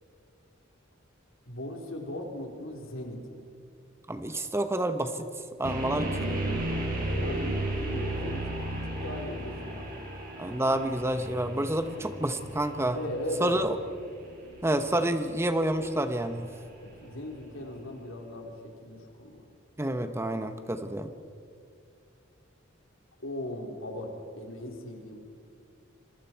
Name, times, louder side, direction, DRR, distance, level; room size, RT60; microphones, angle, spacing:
voice 1, 1.5-3.5 6.9-9.9 12.8-13.6 17.0-18.5 18.8-19.4 23.2-25.2, left 1 dB, 75° left, 1 dB, 3.8 m, -38 dB
voice 2, 4.1-5.3 5.6-6.4 10.4-13.0 13.4-13.7 14.6-16.5 19.8-21.1, right 1 dB, 15° right, 9 dB, 0.9 m, -29 dB
sound 1, 5.6-17.6, right 1 dB, 45° right, 5.6 m, -35 dB
27.5 x 22.5 x 4.5 m, 2.4 s
head